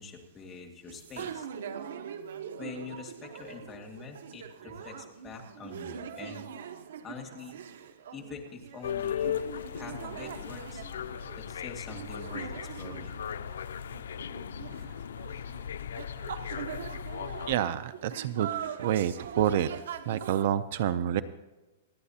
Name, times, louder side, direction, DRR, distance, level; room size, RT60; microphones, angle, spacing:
voice 1, 0.0-1.5 2.6-6.4 7.0-7.7 8.1-9.4 9.7-10.9 11.3-13.1, left 4 dB, 15° left, 0 dB, 2.2 m, -45 dB
sound 1, 0.9-20.5, right 8 dB, 75° right, 1.2 m, -42 dB
sound 2, 8.8-17.6, left 9 dB, 90° left, 0.5 m, -37 dB
voice 2, 17.5-18.5 18.8-19.7 20.1-21.2, right 11 dB, 50° right, 14 dB, 0.5 m, -28 dB
28.5 x 9.6 x 2.8 m, 1.1 s
supercardioid pair, 170°, 0 cm